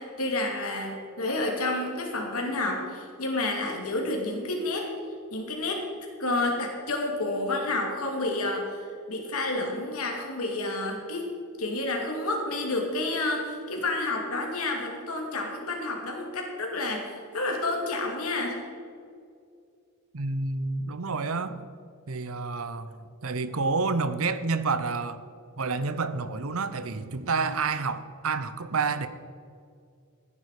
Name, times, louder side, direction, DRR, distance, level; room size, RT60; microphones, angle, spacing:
voice 1, 0.0-4.9 5.3-5.8 6.2-8.7 9.1-11.3 11.6-18.6, left 2 dB, 85° left, 2.6 m, -30 dB
voice 2, 20.1-21.6 22.1-25.2 25.6-29.1, right 4 dB, 70° right, 0.8 m, -29 dB
15.0 x 9.9 x 5.0 m
head